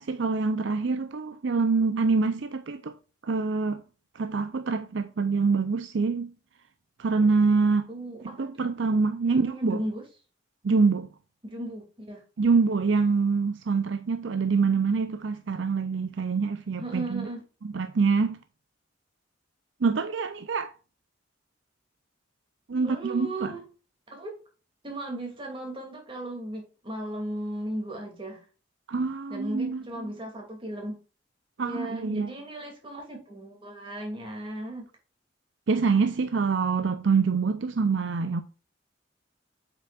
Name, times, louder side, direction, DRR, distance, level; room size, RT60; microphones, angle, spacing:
voice 1, 0.0-2.9 3.2-3.8 4.1-6.3 7.0-7.9 8.2-9.8 10.6-11.1 12.4-17.3 17.6-18.4 19.8-20.7 22.7-23.5 28.9-30.1 31.6-32.3 35.7-38.4, right 4 dB, 65° right, 0.5 m, -25 dB
voice 2, 7.9-8.7 9.3-10.0 11.4-12.2 16.8-17.4 22.8-23.6 24.1-24.3 24.8-28.4 29.3-31.0 31.6-34.8, right 1 dB, 25° right, 2.5 m, -36 dB
8.0 x 5.9 x 2.4 m
head